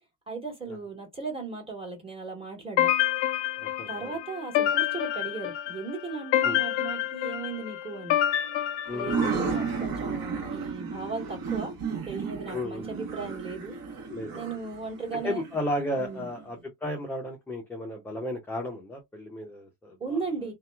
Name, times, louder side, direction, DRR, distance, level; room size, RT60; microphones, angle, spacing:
voice 1, 0.3-2.9 3.9-8.2 8.9-11.8 12.0-13.8 14.3-15.4 16.0-16.3 20.0-20.5, right 4 dB, 10° right, 1.4 m, -36 dB
sound 1, 2.8-9.7, left 12 dB, 60° left, 0.6 m, -28 dB
voice 2, 3.6-4.1 6.4-6.6 8.9-9.2 12.5-12.9 14.1-14.3 15.1-20.0, left 1 dB, 5° left, 0.5 m, -33 dB
sound 2, 8.9-16.4, right 5 dB, 45° right, 1.3 m, -33 dB
2.8 x 2.2 x 2.3 m
supercardioid pair, 105°, 47 cm